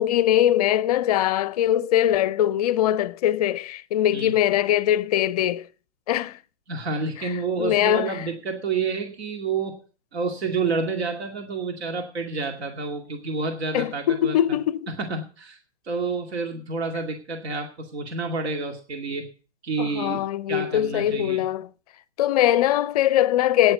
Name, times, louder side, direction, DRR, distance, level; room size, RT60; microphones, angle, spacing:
voice 1, 0.0-5.7 6.1-6.4 7.2-7.3 7.6-8.1 13.7-14.9 19.8-21.7 22.2-23.7, left 12 dB, 35° left, 0.5 m, -22 dB
voice 2, 6.7-9.8 10.1-14.6 14.9-15.6 15.8-19.2 19.6-21.4, right 4 dB, 65° right, 2.3 m, -29 dB
9.6 x 9.1 x 8.0 m
hypercardioid pair, 130°, 34 cm